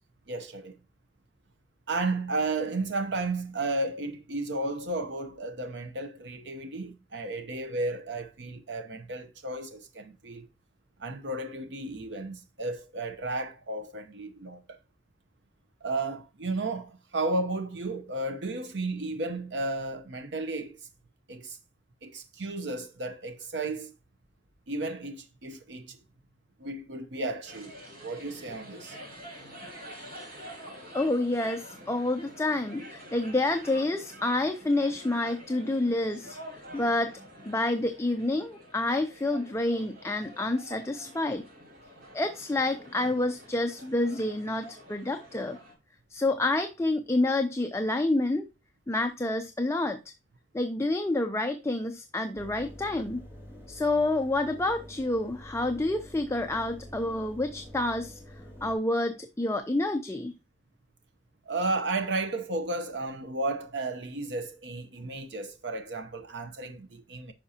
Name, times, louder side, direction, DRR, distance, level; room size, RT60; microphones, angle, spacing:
voice 1, 0.3-0.7 1.9-10.5 11.0-14.8 15.8-20.8 21.3-21.6 22.0-23.9 24.7-26.0 26.6-29.0 61.5-67.3, right 2 dB, 80° right, 0.9 m, -33 dB
sound 1, 27.4-45.7, equal, 55° right, 4.1 m, -47 dB
voice 2, 30.9-36.4 36.7-37.2 37.5-41.4 42.1-45.6 46.1-48.4 48.9-50.0 50.5-53.2 53.7-58.2 58.6-60.3, left 2 dB, 15° left, 0.6 m, -28 dB
Engine, 52.3-58.8, equal, 15° right, 2.5 m, -47 dB
10.0 x 5.9 x 2.8 m
head